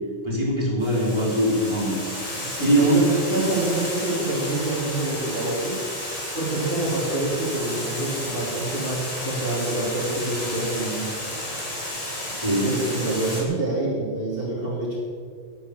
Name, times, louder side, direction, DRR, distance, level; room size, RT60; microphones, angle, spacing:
voice 1, 0.2-1.9 2.6-3.0 12.4-12.8, right 1 dB, 25° right, -5 dB, 4.5 m, -21 dB
Water, 0.8-13.4, left 1 dB, 30° left, 4.1 m, -32 dB
voice 2, 2.5-5.9 6.3-11.2 12.3-12.4 12.6-15.0, right 2 dB, 55° right, -6 dB, 3.4 m, -27 dB
11.5 x 11.5 x 8.5 m, 2.1 s
omnidirectional pair, 1.1 m